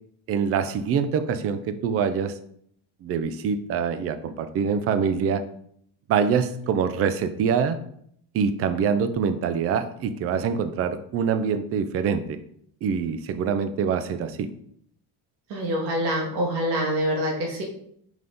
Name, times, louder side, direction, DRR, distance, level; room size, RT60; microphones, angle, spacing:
voice 1, 0.3-2.4 3.0-5.4 6.1-7.8 8.3-12.4 12.8-14.5, right 6 dB, 35° right, 10 dB, 0.4 m, -25 dB
voice 2, 15.5-17.6, equal, 80° right, -1 dB, 1.9 m, -25 dB
5.7 x 5.2 x 3.8 m, 0.68 s
cardioid pair, 175°, 40 cm